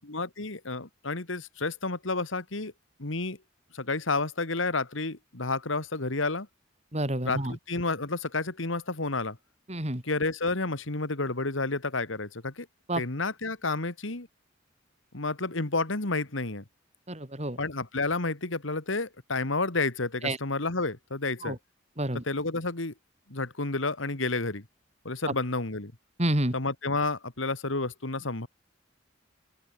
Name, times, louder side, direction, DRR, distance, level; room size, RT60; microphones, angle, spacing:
voice 1, 0.0-2.7 3.0-3.4 3.7-6.5 7.2-9.4 10.0-12.7 13.0-14.3 15.1-16.6 17.6-21.6 22.2-22.9 23.3-24.6 25.0-25.9 26.5-28.5, left 3 dB, 85° left, 2.4 m, -30 dB
voice 2, 6.9-7.6 9.7-10.0 12.9-13.0 17.1-17.6 20.2-20.4 21.4-21.6 22.0-22.2 25.3-25.4 26.2-26.5, right 1 dB, 35° right, 4.0 m, -29 dB
open air
head